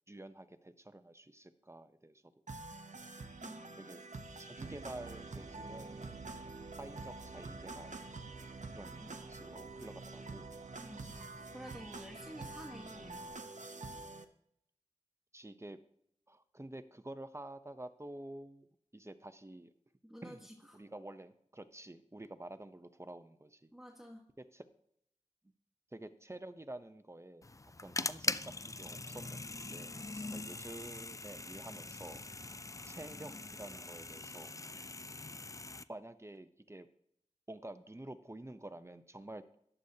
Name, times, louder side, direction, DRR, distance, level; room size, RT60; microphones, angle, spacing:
voice 1, 0.1-2.3 3.8-4.0 4.4-6.2 6.8-8.1 8.7-10.5 12.7-13.1 14.0-14.2 15.3-15.8 16.3-19.7 20.2-23.7 24.4-24.7 25.9-27.5 27.8-32.2 32.9-34.5 35.9-36.9 37.5-39.6, right 1 dB, 20° right, 11 dB, 0.8 m, -49 dB
sound 1, 2.5-14.2, right 3 dB, 80° right, 0.8 m, -47 dB
sound 2, 4.6-13.4, right 5 dB, 50° right, 0.4 m, -53 dB
voice 2, 10.8-13.2 20.0-20.5 23.7-24.3, equal, 5° right, 0 dB, 1.5 m, -50 dB
sound 3, 27.4-35.8, left 3 dB, 25° left, 0.4 m, -42 dB
14.5 x 10.0 x 2.8 m, 0.72 s
wide cardioid pair, 55°, 13 cm